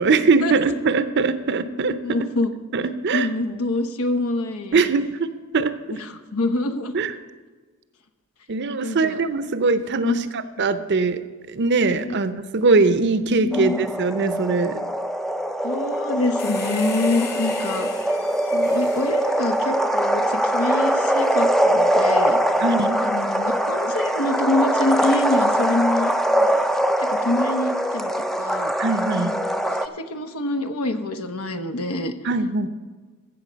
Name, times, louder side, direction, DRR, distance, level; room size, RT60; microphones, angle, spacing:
voice 1, 0.0-2.2 2.7-3.3 4.7-5.7 6.9-7.1 8.5-11.2 11.5-14.8 22.6-23.0 28.8-29.3 32.2-32.7, right 3 dB, 50° right, 12 dB, 0.6 m, -21 dB
voice 2, 2.0-2.5 3.1-4.8 6.3-6.9 8.8-9.2 10.0-10.2 12.1-12.2 13.5-13.8 15.6-17.9 18.5-22.4 23.0-26.1 26.4-28.7 29.3-29.6 29.8-32.1, left 2 dB, 80° left, 8 dB, 0.9 m, -26 dB
sound 1, 13.5-29.9, equal, ahead, 0.4 m, -22 dB
sound 2, 16.4-20.2 21.2-21.3, left 5 dB, 45° left, 1.7 m, -37 dB
14.5 x 7.4 x 5.2 m, 1.4 s
head